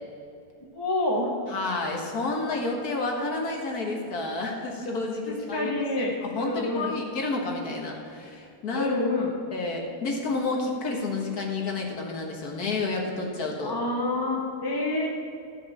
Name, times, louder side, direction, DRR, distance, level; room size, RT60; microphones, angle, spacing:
voice 1, 0.7-1.3 5.3-6.9 8.7-9.3 13.6-15.1, left 2 dB, 20° left, -2 dB, 0.8 m, -28 dB
voice 2, 1.5-5.7 6.0-8.9 9.5-13.7, left 3 dB, 70° left, 0 dB, 1.9 m, -30 dB
14.0 x 5.4 x 7.0 m, 2.6 s
omnidirectional pair, 1.7 m